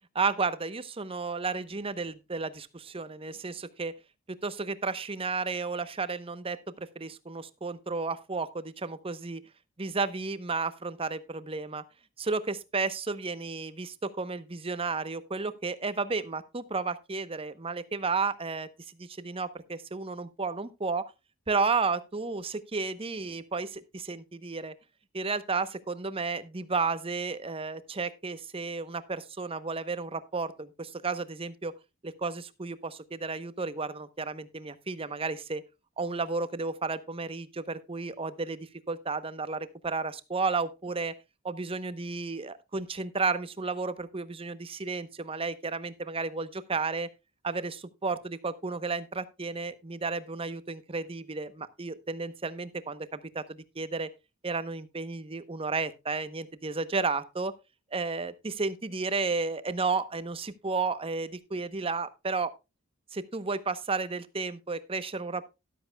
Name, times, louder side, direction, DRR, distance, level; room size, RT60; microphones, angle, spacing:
voice 1, 0.1-3.9 4.3-9.4 9.8-11.8 12.2-18.7 19.0-21.1 21.5-24.7 25.1-31.7 32.0-35.6 36.0-41.1 41.4-47.1 47.4-54.1 54.4-57.5 57.9-62.5 63.1-65.5, right 4 dB, 25° right, 0.8 m, -32 dB
13.5 x 12.0 x 2.2 m
head